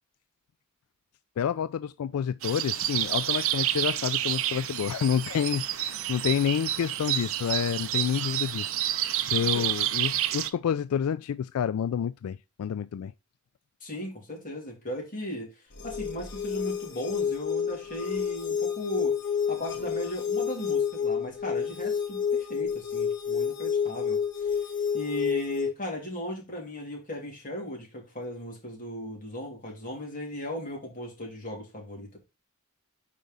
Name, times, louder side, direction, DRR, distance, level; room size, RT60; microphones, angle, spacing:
voice 1, 1.4-8.8 9.2-13.1, left 8 dB, 90° left, 0.3 m, -29 dB
sound 1, 2.4-10.5, right 12 dB, 65° right, 0.5 m, -29 dB
voice 2, 13.8-19.2 19.5-24.6 24.9-32.2, equal, 40° left, 3.0 m, -37 dB
sound 2, 15.7-25.7, left 7 dB, 55° left, 1.4 m, -29 dB
5.1 x 4.6 x 5.4 m
head